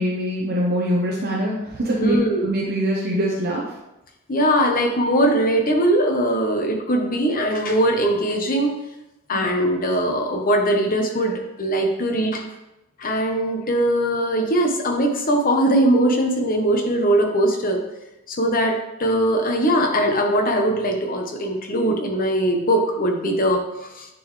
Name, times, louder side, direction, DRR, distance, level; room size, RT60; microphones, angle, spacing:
voice 1, 0.0-3.6 9.3-9.5, equal, 45° right, -3 dB, 0.9 m, -23 dB
voice 2, 2.0-2.5 4.3-8.7 9.3-12.4 13.0-17.8 18.3-24.1, right 1 dB, 40° left, 2 dB, 1.0 m, -21 dB
9.2 x 4.0 x 3.2 m, 0.93 s
head